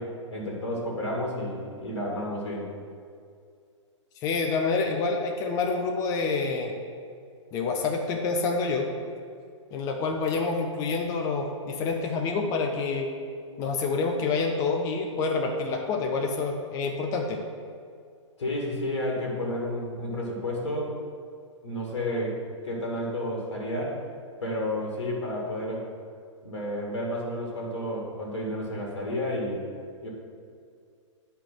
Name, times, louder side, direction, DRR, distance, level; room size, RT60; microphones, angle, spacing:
voice 1, 0.0-2.7 18.4-20.9 21.6-22.4 22.6-24.0 24.4-25.8 26.4-29.6 30.0-30.1, left 1 dB, 60° left, -2 dB, 1.8 m, -31 dB
voice 2, 4.2-6.7 7.5-8.9 9.7-13.1 13.6-17.4, left 4 dB, 20° left, 2 dB, 0.6 m, -27 dB
9.2 x 5.2 x 4.5 m, 2.3 s
figure-of-eight pair, 115°, 16 cm